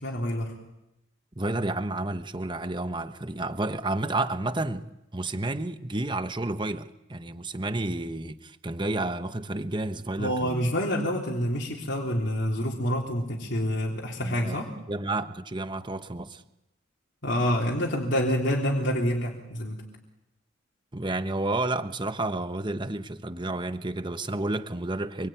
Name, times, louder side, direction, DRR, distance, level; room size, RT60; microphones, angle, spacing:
voice 1, 0.0-0.5 10.2-14.7 17.2-19.8, equal, 60° left, -2 dB, 3.7 m, -27 dB
voice 2, 1.4-4.9 5.1-10.7 14.2-14.6 14.9-16.4 20.9-25.3, right 2 dB, 25° right, 10 dB, 1.1 m, -31 dB
28.0 x 22.5 x 9.2 m, 0.91 s
head